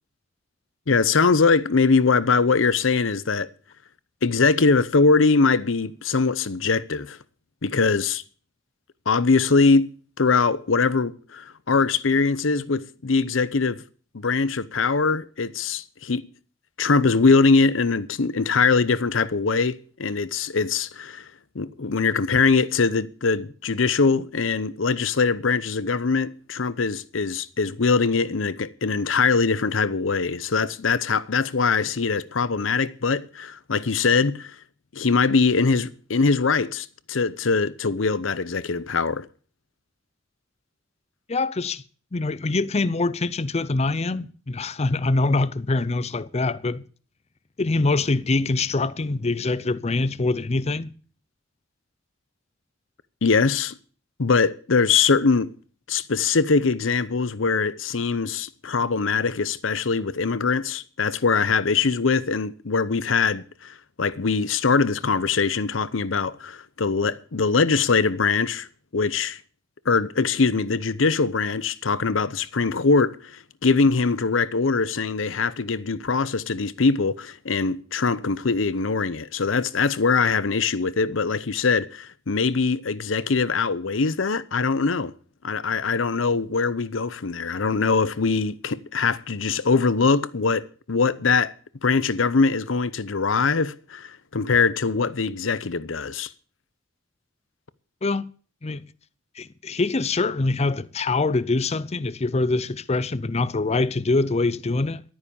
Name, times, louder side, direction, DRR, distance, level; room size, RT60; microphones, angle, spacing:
voice 1, 0.9-3.5 4.2-7.2 7.6-8.2 9.1-13.8 14.1-16.2 16.8-21.3 21.5-34.5 34.9-39.3 53.2-53.7 54.2-55.5 55.9-68.7 68.9-69.4 69.9-85.1 85.4-91.5 91.8-96.3, left 4 dB, 80° left, 0.8 m, -22 dB
voice 2, 41.3-41.8 42.1-46.9 47.6-50.9 98.0-98.3 98.6-98.8 99.4-105.0, left 3 dB, 35° left, 0.6 m, -24 dB
12.5 x 9.7 x 7.0 m
head